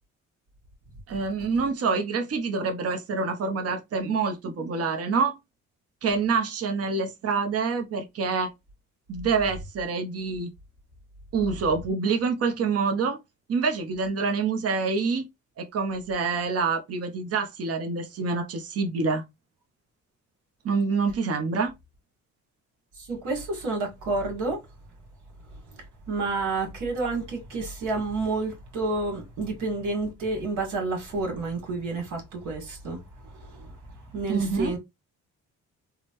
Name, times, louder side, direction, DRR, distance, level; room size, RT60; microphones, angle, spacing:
voice 1, 1.1-5.4 6.0-8.5 9.1-10.5 11.3-13.2 13.5-15.3 15.6-19.2 20.6-21.7 34.3-34.7, right 4 dB, 50° right, 0.9 m, -26 dB
voice 2, 22.9-24.6 25.5-34.8, right 3 dB, 80° right, 1.9 m, -30 dB
3.6 x 2.2 x 2.9 m
cardioid pair, 90°, 30 cm